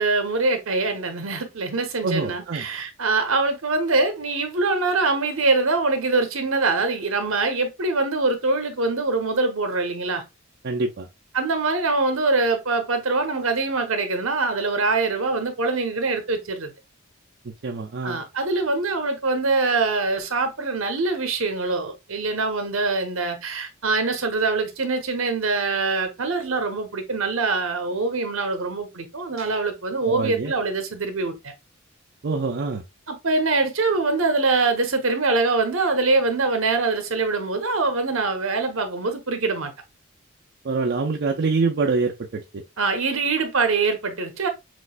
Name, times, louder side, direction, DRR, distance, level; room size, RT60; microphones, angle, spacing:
voice 1, 0.0-10.2 11.3-16.7 18.0-31.5 33.1-39.7 42.8-44.5, right 3 dB, 65° right, 0.9 m, -24 dB
voice 2, 2.0-2.6 10.6-11.1 17.6-18.2 30.1-30.5 32.2-32.8 40.6-42.6, right 4 dB, 50° right, 0.5 m, -25 dB
6.1 x 2.5 x 2.2 m
head